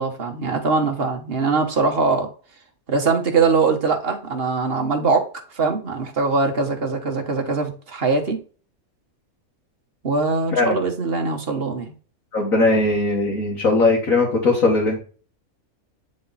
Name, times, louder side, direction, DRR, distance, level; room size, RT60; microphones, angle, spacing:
voice 1, 0.0-2.3 2.9-5.3 5.5-8.4 10.0-11.9, right 4 dB, 45° right, 3 dB, 1.5 m, -22 dB
voice 2, 12.3-15.0, left 2 dB, 70° left, -4 dB, 2.2 m, -19 dB
9.3 x 4.3 x 4.1 m, 0.40 s
omnidirectional pair, 1.5 m